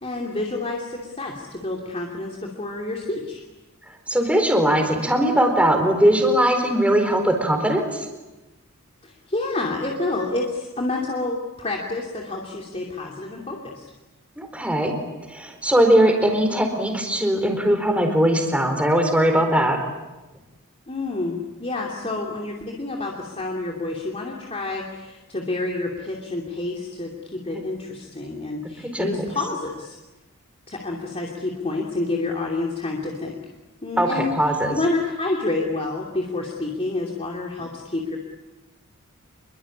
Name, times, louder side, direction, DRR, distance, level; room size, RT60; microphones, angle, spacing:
voice 1, 0.0-3.4 9.0-13.8 20.9-30.0 30.7-33.4 33.8-34.3 34.7-38.2, left 2 dB, 30° left, -1 dB, 2.8 m, -28 dB
voice 2, 4.1-8.1 14.4-15.0 15.2-19.8 28.9-29.3 34.0-34.8, right 1 dB, 5° right, 4 dB, 4.3 m, -20 dB
27.5 x 23.0 x 8.7 m, 1.1 s
head